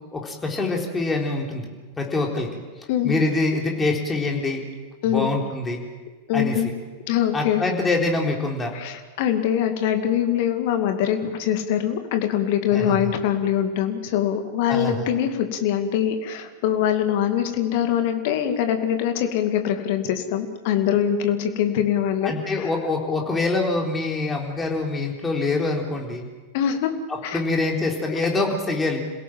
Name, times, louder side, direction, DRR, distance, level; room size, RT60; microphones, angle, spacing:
voice 1, 0.1-1.7 2.0-2.6 3.0-4.7 5.1-5.8 6.3-6.6 7.3-8.8 12.7-13.1 14.7-15.1 22.2-26.3 27.3-29.0, left 3 dB, 15° left, 0 dB, 4.0 m, -25 dB
voice 2, 2.9-3.2 5.0-5.4 6.3-6.7 7.1-7.6 8.7-22.7 26.5-26.9 27.2-27.4, left 9 dB, 50° left, 6 dB, 2.4 m, -23 dB
27.5 x 17.0 x 7.6 m, 1.3 s
figure-of-eight pair, 90°, 0 cm